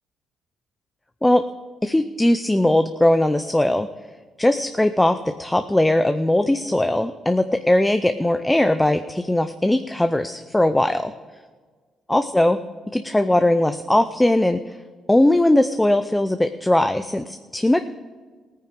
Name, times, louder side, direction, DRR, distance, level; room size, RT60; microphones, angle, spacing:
voice 1, 1.8-3.9 4.4-11.1 12.1-12.6 12.9-14.8 15.1-17.8, left 1 dB, 10° left, 9 dB, 0.5 m, -19 dB
16.5 x 9.3 x 5.2 m, 1.4 s
cardioid pair, 90°, 0 cm